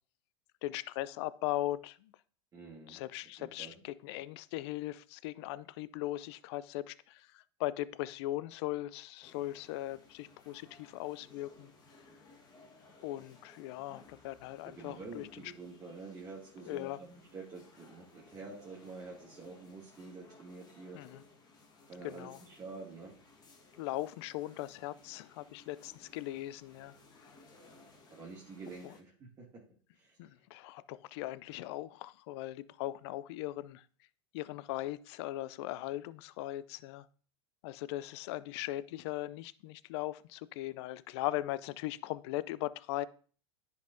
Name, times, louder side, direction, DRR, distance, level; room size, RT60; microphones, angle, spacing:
voice 1, 0.6-2.1 2.9-11.7 13.0-15.5 16.7-17.0 20.9-21.2 22.0-22.4 23.8-27.0 30.2-33.8 34.3-37.1 37.6-43.1, left 16 dB, 60° left, 0.4 m, -39 dB
voice 2, 2.5-3.0 3.4-3.7 14.8-21.0 21.9-23.1 28.1-29.6 29.9-30.2, right 3 dB, 25° right, 2.3 m, -48 dB
sound 1, 9.2-29.0, left 3 dB, 25° left, 1.5 m, -60 dB
10.5 x 5.4 x 2.7 m
hypercardioid pair, 100°, 16 cm